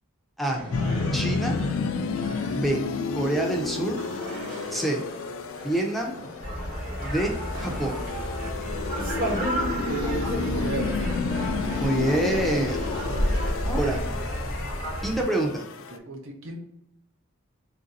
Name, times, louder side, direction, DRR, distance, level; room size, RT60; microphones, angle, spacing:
sound 1, 0.5-15.0, right 1 dB, 90° right, 1.0 m, -43 dB
sound 2, 0.7-16.0, left 4 dB, 70° left, 0.4 m, -31 dB
voice 1, 1.1-1.5 2.5-2.8 3.1-4.0 4.7-5.0 5.6-6.1 7.0-8.0 11.8-12.8 13.6-14.0 15.0-15.6, right 1 dB, ahead, 0 dB, 0.5 m, -26 dB
sound 3, 6.4-15.2, equal, 40° right, 1.0 m, -30 dB
voice 2, 9.8-11.0 15.9-16.6, right 3 dB, 70° right, 3 dB, 0.7 m, -33 dB
3.3 x 2.6 x 3.9 m, 0.79 s
head